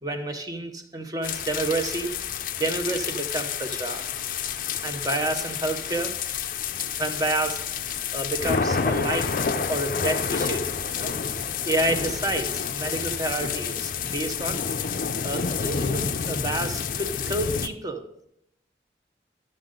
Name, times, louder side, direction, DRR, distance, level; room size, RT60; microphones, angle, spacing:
voice 1, 0.0-2.1 2.6-4.0 4.8-6.1 7.0-10.7 11.0-11.1 11.6-14.6 15.2-18.0, right 2 dB, 20° right, 5 dB, 0.8 m, -29 dB
sound 1, 1.2-17.7, left 6 dB, 50° left, 0.5 m, -29 dB
11.5 x 6.5 x 3.8 m, 0.77 s
head